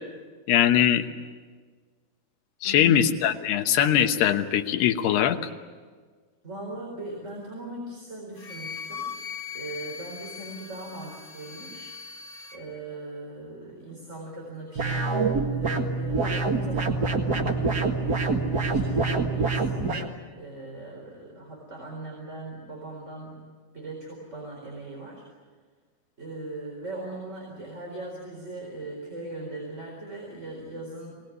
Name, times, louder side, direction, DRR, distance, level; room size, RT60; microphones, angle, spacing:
voice 1, 0.5-1.1 2.6-5.4, left 10 dB, 85° left, 6 dB, 3.2 m, -21 dB
voice 2, 2.6-3.0 6.4-9.1 9.5-11.9 12.5-20.1 20.4-23.4 23.7-25.3 26.2-31.1, right 2 dB, 20° right, -2 dB, 4.3 m, -39 dB
Wind instrument woodwind instrument, 8.4-12.6, left 6 dB, 55° left, 3.8 m, -39 dB
sound 1, 14.8-20.1, right 3 dB, 45° right, 1.2 m, -26 dB
25.5 x 19.0 x 9.5 m, 1.5 s
omnidirectional pair, 4.6 m